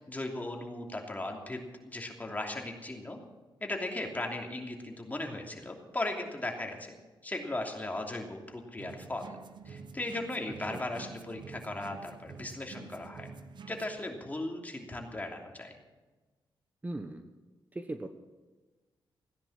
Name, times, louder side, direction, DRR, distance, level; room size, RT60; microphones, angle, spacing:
voice 1, 0.0-3.2 3.6-6.9 7.2-9.3 9.6-13.3 13.7-15.8, left 2 dB, 20° left, 2 dB, 3.0 m, -37 dB
sound 1, 8.8-14.0, right 5 dB, 65° right, 1.0 m, -48 dB
voice 2, 10.7-11.0 16.8-17.2 17.7-18.1, right 2 dB, 20° right, 7 dB, 1.0 m, -39 dB
16.0 x 10.5 x 7.4 m, 1.3 s
cardioid pair, 90°, 8 cm